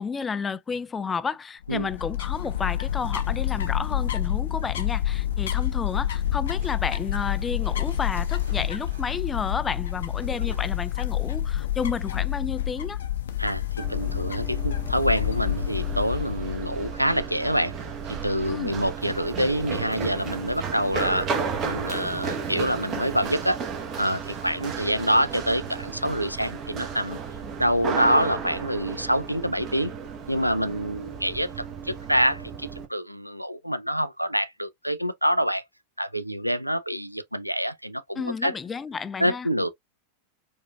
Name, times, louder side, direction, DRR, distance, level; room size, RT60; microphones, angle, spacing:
voice 1, 0.0-13.0 18.5-18.7 38.2-39.5, left 5 dB, 15° left, 0.3 m, -31 dB
sound 1, 1.6-16.9, left 12 dB, 65° left, 0.6 m, -28 dB
sound 2, 5.2-11.3, right 2 dB, 65° right, 2.1 m, -48 dB
voice 2, 13.4-17.7 18.1-21.3 21.6-23.6 24.0-27.2 27.6-29.9 30.3-35.6 36.0-38.5 39.2-39.7, equal, 90° right, 0.3 m, -26 dB
Run, 13.8-32.8, right 6 dB, 30° right, 0.9 m, -34 dB
4.8 x 2.5 x 2.3 m
figure-of-eight pair, 90°, 0 cm